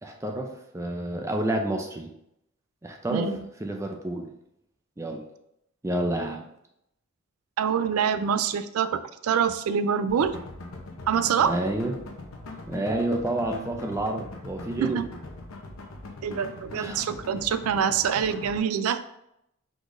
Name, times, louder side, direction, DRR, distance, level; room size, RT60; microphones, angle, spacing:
voice 1, 0.0-2.1 2.8-3.3 3.6-4.2 5.0-5.2 5.8-6.5 11.4-11.9 12.7-15.0 16.7-17.1, right 1 dB, 15° right, 2 dB, 0.5 m, -29 dB
voice 2, 7.6-10.4 11.1-11.6 14.8-15.1 16.2-19.0, right 7 dB, 85° right, 12 dB, 0.3 m, -25 dB
sound 1, 10.1-18.6, left 2 dB, 75° left, 0.8 m, -41 dB
5.0 x 3.9 x 2.5 m, 0.80 s
head